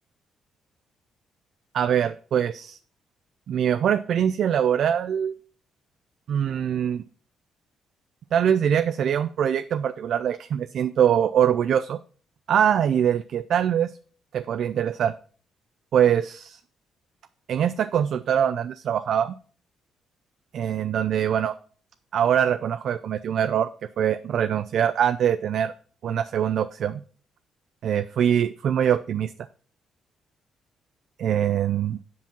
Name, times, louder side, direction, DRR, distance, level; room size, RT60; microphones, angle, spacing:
voice 1, 1.7-2.8 3.5-5.3 6.3-7.0 8.3-12.0 12.5-13.9 14.3-15.1 15.9-16.6 17.5-19.3 20.5-21.5 22.1-23.7 24.0-25.7 26.0-27.0 27.8-29.3 31.2-32.0, right 9 dB, 65° right, 11 dB, 0.4 m, -23 dB
7.5 x 5.4 x 5.9 m, 0.42 s
cardioid pair, 90°, 0 cm